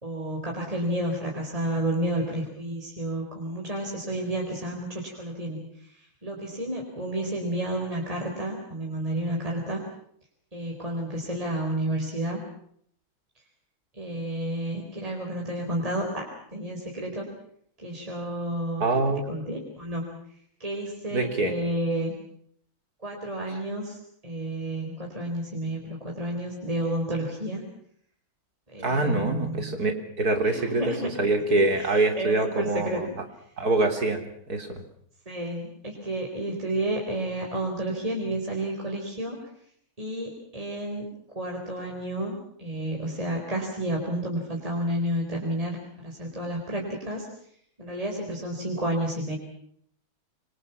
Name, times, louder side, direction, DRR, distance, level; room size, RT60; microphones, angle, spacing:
voice 1, 0.0-5.7 5.9-9.8 10.5-12.4 13.9-17.3 17.8-18.8 19.3-20.2 20.6-22.1 23.0-27.6 28.7-29.7 30.4-31.1 31.7-33.1 35.3-39.4 40.0-41.1 41.3-47.3 47.8-49.4, right 1 dB, 15° right, 0 dB, 4.5 m, -31 dB
voice 2, 18.8-19.3 21.1-21.5 28.8-33.1 33.6-34.2 34.5-34.7, right 2 dB, 50° right, 6 dB, 3.8 m, -25 dB
26.5 x 25.0 x 5.9 m, 0.66 s
omnidirectional pair, 2.2 m